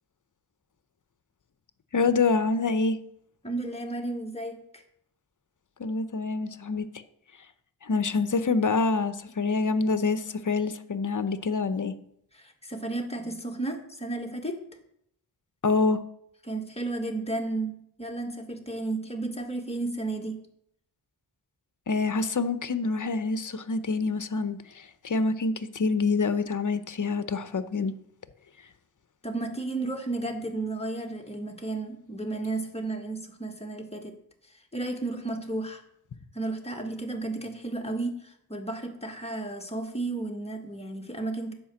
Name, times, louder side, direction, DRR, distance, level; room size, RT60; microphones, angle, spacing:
voice 1, 1.9-3.0 5.8-6.9 7.8-11.9 15.6-16.0 21.9-27.9, left 4 dB, 45° left, 12 dB, 0.8 m, -26 dB
voice 2, 3.4-4.8 12.3-14.6 16.5-20.4 29.2-34.2 34.5-35.8 36.3-41.5, right 2 dB, 15° left, 3 dB, 1.7 m, -33 dB
10.0 x 5.1 x 7.3 m, 0.73 s
wide cardioid pair, 70°, 42 cm